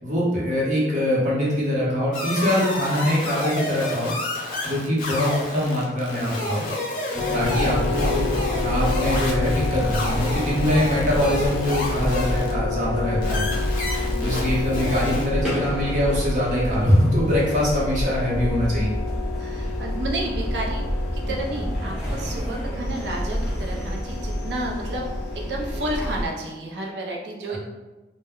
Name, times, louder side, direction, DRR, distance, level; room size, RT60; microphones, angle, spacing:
voice 1, 0.0-4.1 4.6-6.6 7.3-13.5 14.2-18.9, left 1 dB, 45° right, -6 dB, 0.8 m, -23 dB
sound 1, 2.1-12.5 13.2-15.3, left 2 dB, 50° left, 0.6 m, -30 dB
sound 2, 7.2-26.0, left 6 dB, 85° left, 0.4 m, -33 dB
sound 3, 7.4-26.3, equal, 5° right, 0.6 m, -28 dB
voice 2, 14.0-14.7 19.4-20.8 21.1-25.1 25.3-27.6, right 1 dB, 75° right, -1 dB, 0.5 m, -31 dB
2.1 x 2.0 x 3.5 m, 1.1 s
head